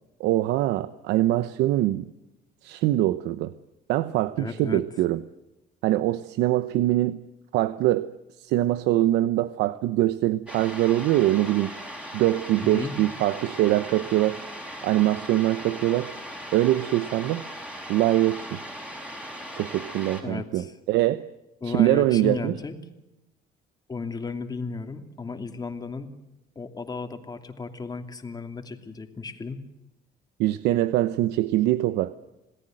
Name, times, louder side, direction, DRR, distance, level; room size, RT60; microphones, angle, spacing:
voice 1, 0.2-2.1 2.6-3.5 3.9-5.2 5.8-7.2 7.5-8.1 8.4-11.7 12.1-14.4 14.8-16.1 16.5-17.4 17.9-18.6 19.6-21.3 21.7-22.6 30.4-32.2, right 15 dB, 90° right, 14 dB, 0.9 m, -23 dB
voice 2, 4.4-4.8 12.6-12.9 20.2-20.7 21.6-22.8 23.9-26.1 26.5-29.6, left 4 dB, 25° left, 6 dB, 2.8 m, -34 dB
sound 1, 10.5-20.2, equal, 5° right, 6.2 m, -38 dB
27.0 x 18.0 x 7.8 m, 0.96 s
cardioid pair, 110°, 17 cm